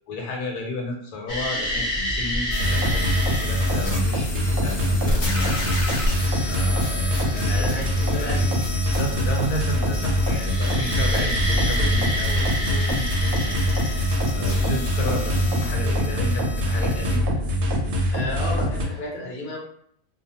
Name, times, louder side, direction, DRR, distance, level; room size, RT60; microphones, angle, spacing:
voice 1, 0.1-5.6 6.4-7.9 8.2-8.4 8.8-13.6 14.3-17.3, left 2 dB, 85° left, 1 dB, 1.2 m, -32 dB
sound 1, 1.3-3.7 4.9-8.7 10.4-14.4 17.3-17.4 18.6-19.0, equal, 20° left, 1.0 m, -29 dB
sound 2, 2.5-17.2, left 1 dB, 70° left, 0.4 m, -32 dB
sound 3, 2.6-18.8, equal, 70° right, 0.8 m, -24 dB
voice 2, 7.6-8.5 18.1-19.6, left 1 dB, 40° left, -4 dB, 0.8 m, -32 dB
2.4 x 2.3 x 2.7 m, 0.65 s
omnidirectional pair, 1.6 m